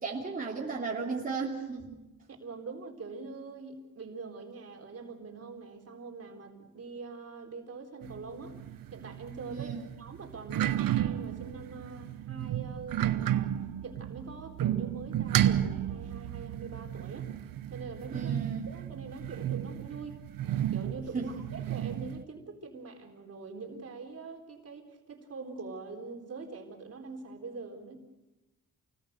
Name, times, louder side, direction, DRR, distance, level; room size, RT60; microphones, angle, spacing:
voice 1, 0.0-2.0 9.5-9.9 18.1-18.7 21.1-21.5, right 4 dB, 25° right, -3 dB, 3.4 m, -35 dB
voice 2, 2.4-8.6 8.9-13.5 13.8-17.3 17.7-18.3 18.7-20.2 20.7-28.0, right 4 dB, 45° right, 1 dB, 4.1 m, -44 dB
sound 1, 8.0-22.2, right 11 dB, 85° right, 1.0 m, -33 dB
29.0 x 20.0 x 6.7 m, 1.0 s
cardioid pair, 120°, 33 cm